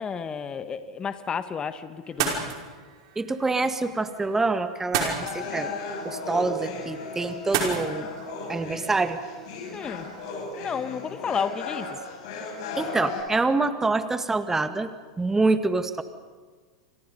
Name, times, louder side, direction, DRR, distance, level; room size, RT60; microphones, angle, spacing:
voice 1, 0.0-2.3 9.7-10.1 10.5-12.0, left 6 dB, 25° left, 10 dB, 1.5 m, -31 dB
sound 1, 2.0-10.4, right 6 dB, 65° right, 5.4 m, -35 dB
voice 2, 3.2-5.7 6.0-8.1 8.5-9.2 12.8-14.9 15.2-16.0, right 3 dB, 10° right, 9 dB, 1.7 m, -26 dB
sound 2, 5.2-13.2, left 3 dB, 65° left, 7.5 m, -36 dB
29.5 x 25.5 x 5.5 m, 1.5 s
hypercardioid pair, 100°, 3 cm